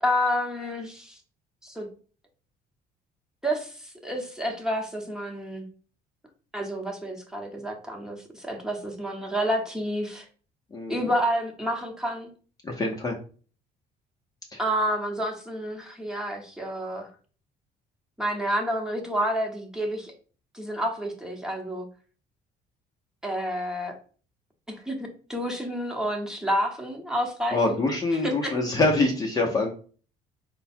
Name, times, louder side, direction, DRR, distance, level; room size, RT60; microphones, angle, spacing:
voice 1, 0.0-1.2 1.6-1.9 3.4-5.6 6.5-10.3 10.9-12.3 14.6-17.1 18.2-20.1 20.5-21.9 23.2-24.0 24.7-27.8 28.2-28.5, equal, 5° right, 0 dB, 1.1 m, -29 dB
voice 2, 10.7-11.1 12.6-13.2 14.5-14.6 27.5-29.7, left 2 dB, 20° left, 0 dB, 0.8 m, -25 dB
4.7 x 2.2 x 4.3 m, 0.40 s
cardioid pair, 110°, 17 cm